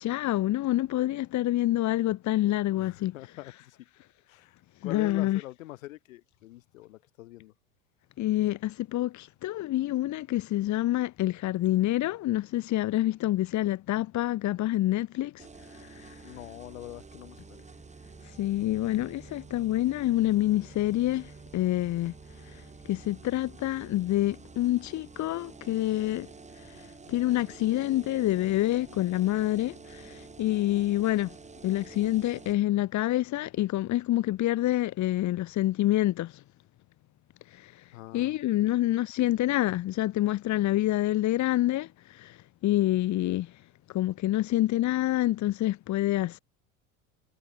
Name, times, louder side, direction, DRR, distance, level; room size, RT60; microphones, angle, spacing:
voice 1, 0.0-3.2 4.8-5.4 8.2-16.4 18.2-22.1 22.4-26.3 26.6-31.4 31.6-36.4 37.5-43.6 43.9-46.4, left 15 dB, 45° left, 2.1 m, -27 dB
voice 2, 2.7-3.8 4.3-7.5 16.2-17.7 37.9-38.8, left 16 dB, 80° left, 3.5 m, -44 dB
sound 1, 15.4-32.5, right 4 dB, 15° right, 4.9 m, -49 dB
hypercardioid pair, 95°, 40 cm